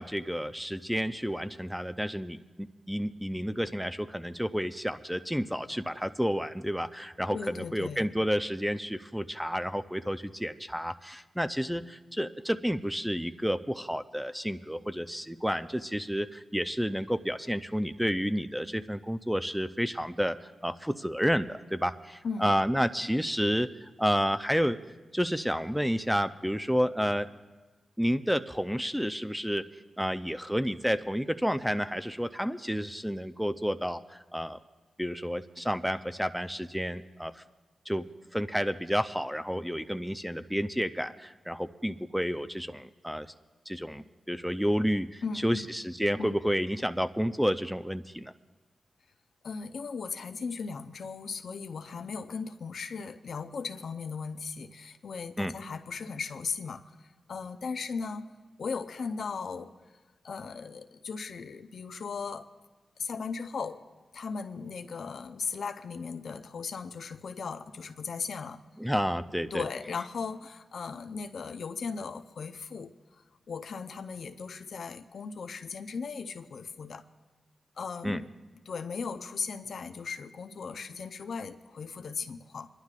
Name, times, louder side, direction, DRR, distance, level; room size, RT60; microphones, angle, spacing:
voice 1, 0.0-24.8 25.1-27.3 28.0-29.6 30.0-34.6 35.0-37.4 37.9-38.1 38.3-43.3 43.7-48.3 55.4-55.5 68.8-69.6 78.0-78.2, equal, ahead, 10 dB, 0.5 m, -30 dB
voice 2, 7.3-8.1 22.2-22.5 45.2-45.7 46.2-46.3 49.4-58.3 58.6-59.7 60.2-62.5 63.0-63.8 64.1-68.6 69.5-77.0 77.8-78.3 78.7-82.7, left 5 dB, 70° left, 8 dB, 0.6 m, -37 dB
27.0 x 11.5 x 2.4 m, 1.2 s
cardioid pair, 60°, 0 cm